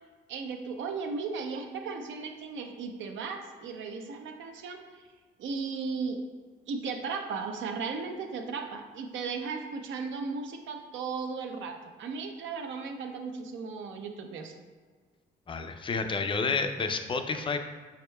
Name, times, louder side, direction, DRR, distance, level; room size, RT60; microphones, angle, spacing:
voice 1, 0.3-5.0 5.4-6.2 6.7-14.5, right 4 dB, 75° right, 4 dB, 0.6 m, -36 dB
voice 2, 15.5-17.6, left 4 dB, 25° left, 7 dB, 0.4 m, -30 dB
4.8 x 4.3 x 2.3 m, 1.5 s
cardioid pair, 90°, 20 cm